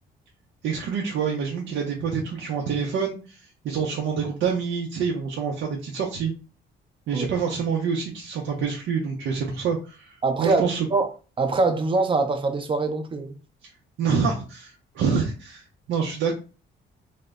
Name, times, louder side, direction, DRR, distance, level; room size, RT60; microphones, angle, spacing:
voice 1, 0.6-6.3 7.1-10.9 14.0-16.4, right 6 dB, 75° right, 0.5 m, -27 dB
voice 2, 10.2-11.1 11.4-13.3, right 3 dB, 25° right, 0.5 m, -24 dB
2.0 x 2.0 x 3.4 m
cardioid pair, 90°, 20 cm